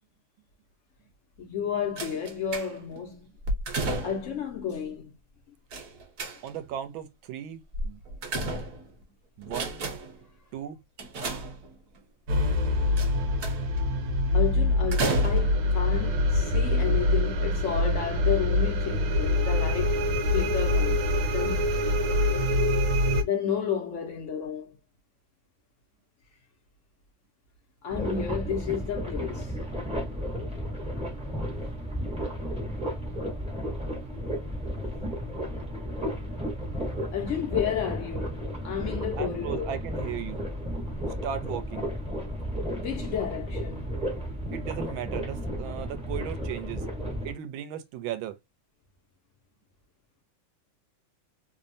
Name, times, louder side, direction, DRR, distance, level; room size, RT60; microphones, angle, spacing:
voice 1, 1.4-3.2 4.0-5.1 14.3-20.0 20.3-21.1 21.3-21.7 23.2-24.8 27.8-29.6 37.1-39.7 42.7-43.9, left 8 dB, 80° left, 0.6 m, -31 dB
sound 1, 2.0-3.0 3.4-4.4 5.7-6.7 7.7-9.0 9.4-10.2 11.0-12.0 13.0-13.8 14.9-15.7 16.6-16.7 17.0-17.1, right 2 dB, 55° right, 1.0 m, -32 dB
voice 2, 6.4-8.0 9.4-9.8 10.5-10.8 20.9-21.0 39.2-40.4 41.2-41.9 44.5-46.8 47.2-48.3, right 10 dB, 85° right, 1.4 m, -36 dB
sound 2, 12.3-23.2, left 1 dB, 70° right, 1.3 m, -25 dB
sound 3, 27.9-47.3, equal, 10° right, 0.3 m, -33 dB
3.4 x 2.0 x 2.5 m
omnidirectional pair, 2.2 m